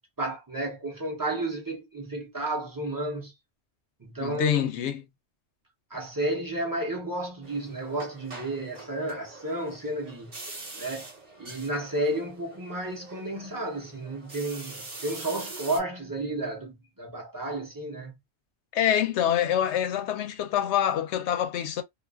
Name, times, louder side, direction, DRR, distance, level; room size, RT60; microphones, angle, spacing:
voice 1, 0.2-3.3 4.0-4.6 5.9-10.4 10.8-11.1 11.4-18.1, right 1 dB, 20° right, 0.7 m, -32 dB
voice 2, 4.2-5.0 18.7-21.8, left 10 dB, 85° left, 0.9 m, -25 dB
sound 1, 7.4-15.8, right 3 dB, 40° right, 1.1 m, -44 dB
2.4 x 2.3 x 2.3 m
omnidirectional pair, 1.1 m